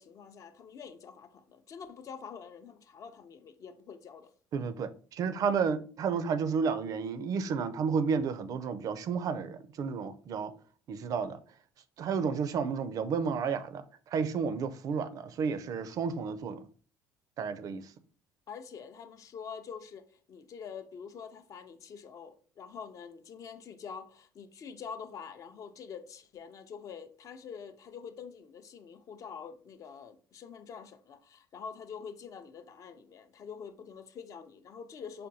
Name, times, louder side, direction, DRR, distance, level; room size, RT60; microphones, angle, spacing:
voice 1, 0.0-4.3 18.5-35.3, left 6 dB, 45° left, 0.4 m, -46 dB
voice 2, 4.5-10.5 10.9-11.4 12.0-16.6 17.4-17.9, right 6 dB, 50° right, 0.4 m, -32 dB
4.9 x 2.2 x 2.7 m
supercardioid pair, 85°, 8 cm